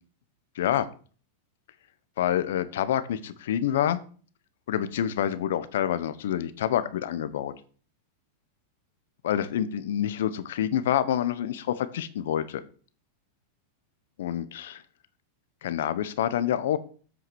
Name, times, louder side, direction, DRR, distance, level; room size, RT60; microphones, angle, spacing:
voice 1, 0.6-0.9 2.2-4.0 4.7-7.5 9.2-12.6 14.2-14.8 15.6-16.8, left 10 dB, 75° left, 13 dB, 1.0 m, -27 dB
7.9 x 6.1 x 6.3 m, 0.43 s
supercardioid pair, 125°, 0 cm